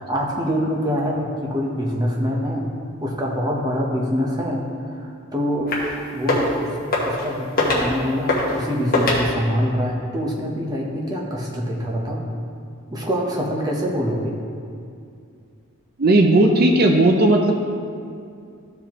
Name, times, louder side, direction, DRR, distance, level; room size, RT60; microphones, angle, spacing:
voice 1, 0.0-2.7 2.9-4.6 5.0-5.7 6.1-6.8 7.0-12.2 12.9-14.4, equal, 15° right, -2 dB, 0.9 m, -25 dB
sound 1, 5.7-5.9 6.2-6.5 6.9-7.3 7.6-7.9 8.3-8.6 8.9-9.2, left 2 dB, 40° left, 1.3 m, -21 dB
voice 2, 16.0-17.5, right 2 dB, 45° right, 2 dB, 0.5 m, -15 dB
13.5 x 4.9 x 3.0 m, 2.3 s
head